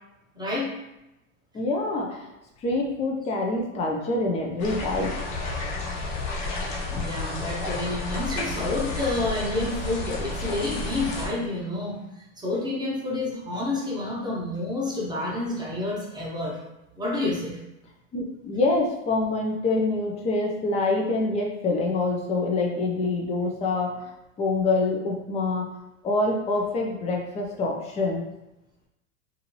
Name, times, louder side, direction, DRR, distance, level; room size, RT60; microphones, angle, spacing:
voice 1, 0.3-0.7 6.9-12.0 12.4-16.6 17.0-17.6, left 2 dB, 10° right, -5 dB, 0.7 m, -29 dB
voice 2, 1.5-2.3 2.6-5.2 18.1-24.0 24.4-25.7 26.0-28.2, left 2 dB, 15° left, 0 dB, 0.4 m, -26 dB
sound 1, 4.6-11.3, left 3 dB, 55° left, 1.1 m, -31 dB
2.6 x 2.4 x 3.0 m, 0.93 s
hypercardioid pair, 110°, 39 cm